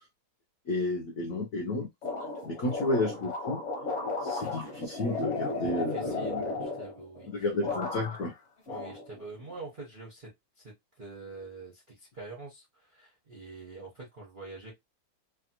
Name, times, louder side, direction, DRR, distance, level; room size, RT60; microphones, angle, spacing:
voice 1, 0.7-1.9 2.4-3.6 4.2-6.4 7.3-8.3, left 2 dB, 70° left, 0.8 m, -31 dB
sound 1, 2.0-7.3 7.6-8.3 8.7-9.5, left 2 dB, 45° left, 1.2 m, -35 dB
voice 2, 5.6-7.5 8.7-14.7, right 3 dB, 50° right, 0.5 m, -46 dB
3.3 x 2.4 x 2.8 m
omnidirectional pair, 2.2 m